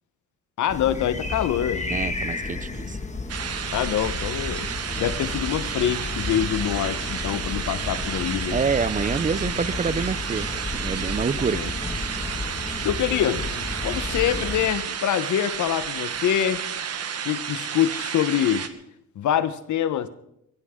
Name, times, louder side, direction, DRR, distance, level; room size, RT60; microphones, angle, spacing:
voice 1, 0.6-1.9 3.7-4.7 5.0-8.6 11.5-11.7 12.8-13.5 13.8-16.6 17.2-18.7 19.1-20.1, left 10 dB, 75° left, 1.2 m, -25 dB
sound 1, 0.7-14.7, left 3 dB, 25° left, 2.0 m, -32 dB
voice 2, 1.9-3.0 8.5-11.7, right 5 dB, 25° right, 0.6 m, -27 dB
sound 2, 3.3-18.7, right 7 dB, 55° right, 1.5 m, -31 dB
21.5 x 16.0 x 3.8 m
cardioid pair, 90°, 30 cm